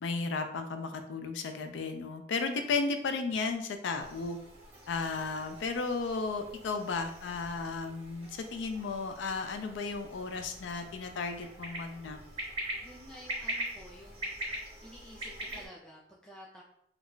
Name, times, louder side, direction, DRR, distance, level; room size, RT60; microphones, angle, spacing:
voice 1, 0.0-4.4 4.9-12.2, left 4 dB, 85° left, 7 dB, 0.4 m, -34 dB
sound 1, 4.0-15.7, right 1 dB, 30° right, 0.6 m, -43 dB
voice 2, 12.8-14.4 14.8-16.6, equal, 5° left, -5 dB, 0.3 m, -51 dB
2.3 x 2.1 x 3.7 m, 0.75 s
head